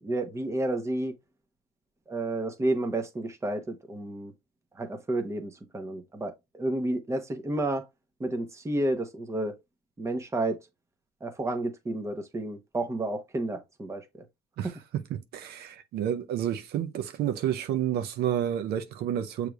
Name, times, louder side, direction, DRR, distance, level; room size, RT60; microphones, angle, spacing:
voice 1, 0.0-1.1 2.1-4.3 4.7-7.8 8.2-9.5 10.0-10.6 11.2-14.0 14.6-14.7, right 1 dB, 15° right, 1.0 m, -31 dB
voice 2, 15.1-19.5, right 10 dB, 70° right, 0.7 m, -30 dB
6.6 x 3.2 x 2.4 m
cardioid pair, 110°, 17 cm